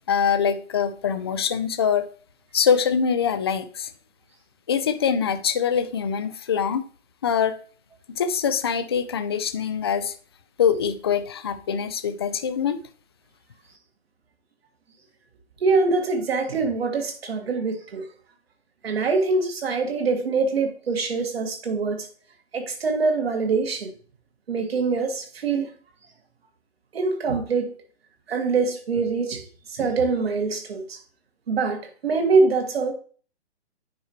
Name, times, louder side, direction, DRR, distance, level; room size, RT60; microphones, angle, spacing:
voice 1, 0.0-2.1 2.5-3.9 4.7-6.8 7.2-7.6 8.1-10.1 10.6-12.8, left 7 dB, 25° left, 0.4 m, -24 dB
voice 2, 15.6-18.0 18.8-22.1 22.5-23.9 24.5-25.7 26.9-27.8 28.3-29.5 29.7-31.0 31.5-32.9, right 4 dB, 60° right, 1.8 m, -24 dB
9.4 x 4.8 x 2.9 m
figure-of-eight pair, 135°, 34 cm